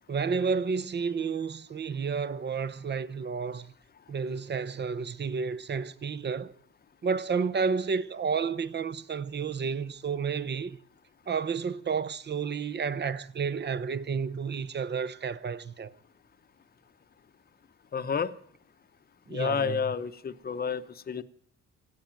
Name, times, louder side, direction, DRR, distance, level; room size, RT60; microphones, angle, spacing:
voice 1, 0.1-3.7 4.1-6.5 7.0-10.8 11.3-15.9 19.3-19.8, right 5 dB, 35° right, 0.8 m, -31 dB
voice 2, 17.9-18.4 19.3-21.2, left 6 dB, 30° left, 0.8 m, -30 dB
16.5 x 8.1 x 8.9 m
cardioid pair, 90°, 30 cm